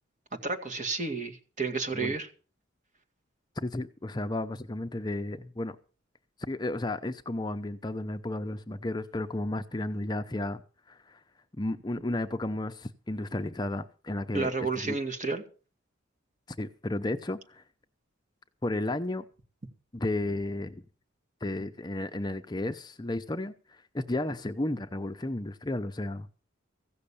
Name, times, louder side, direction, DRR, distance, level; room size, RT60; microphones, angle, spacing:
voice 1, 0.4-2.3 14.3-15.4, right 4 dB, 40° right, 2.0 m, -31 dB
voice 2, 3.6-5.8 6.4-10.6 10.9-11.2 11.6-15.0 16.6-17.6 18.6-19.2 19.9-20.8 21.4-26.3, left 1 dB, 20° left, 0.7 m, -33 dB
16.0 x 6.5 x 8.5 m
head